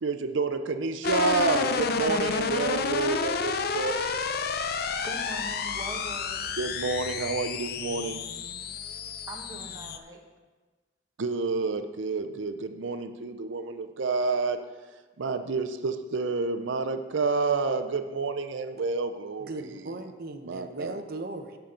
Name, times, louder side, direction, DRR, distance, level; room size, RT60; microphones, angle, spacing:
voice 1, 0.0-4.1 6.6-8.2 11.2-14.6 15.2-19.8 20.4-21.0, right 4 dB, 85° right, 8 dB, 0.6 m, -29 dB
sound 1, 1.0-10.0, left 5 dB, 55° left, 0.5 m, -30 dB
voice 2, 4.7-6.5 9.3-10.2, right 1 dB, 20° right, 0 dB, 1.3 m, -42 dB
voice 3, 19.4-21.6, right 2 dB, 55° right, 6 dB, 0.8 m, -38 dB
17.0 x 5.8 x 3.8 m, 1.3 s
head